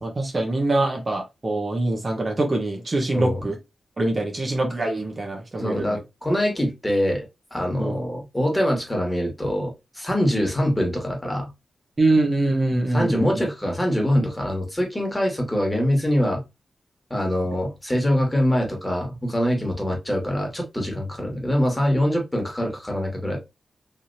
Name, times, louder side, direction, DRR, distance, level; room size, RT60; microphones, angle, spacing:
voice 1, 0.0-3.6 4.0-6.0 7.8-8.0 12.0-13.4, right 2 dB, 45° right, 1.1 m, -24 dB
voice 2, 5.5-11.5 12.9-16.4 17.1-23.4, equal, 15° left, 1.7 m, -24 dB
3.3 x 2.8 x 2.7 m
cardioid pair, 45°, 0 cm